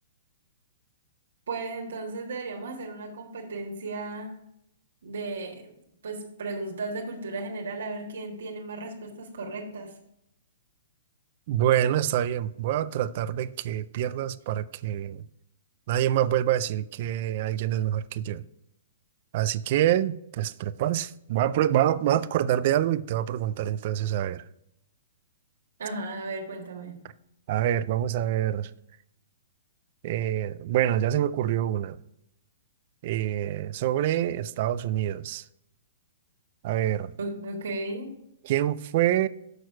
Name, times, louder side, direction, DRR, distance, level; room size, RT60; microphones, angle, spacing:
voice 1, 1.5-4.3 5.0-5.7 6.0-9.9 25.8-27.0 37.2-38.1, right 2 dB, 80° right, 1.6 m, -35 dB
voice 2, 11.5-15.2 15.9-18.4 19.3-24.4 27.5-28.7 30.0-32.0 33.0-35.4 36.6-37.1 38.4-39.3, right 11 dB, 45° right, 0.4 m, -26 dB
6.4 x 6.3 x 4.7 m
hypercardioid pair, 155°, 0 cm